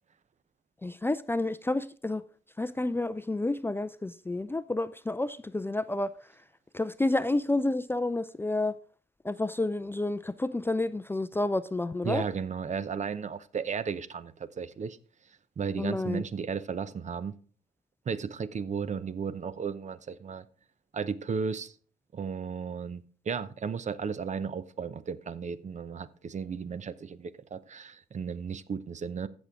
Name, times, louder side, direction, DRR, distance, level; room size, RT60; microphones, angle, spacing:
voice 1, 0.8-2.2 2.6-6.1 6.7-8.8 9.2-12.2 15.8-16.2, left 2 dB, 15° left, 0.4 m, -30 dB
voice 2, 12.0-15.0 15.6-17.3 18.1-20.5 20.9-21.7 22.1-29.3, right 6 dB, 45° right, 0.7 m, -34 dB
15.0 x 6.2 x 3.6 m
cardioid pair, 75°, 18 cm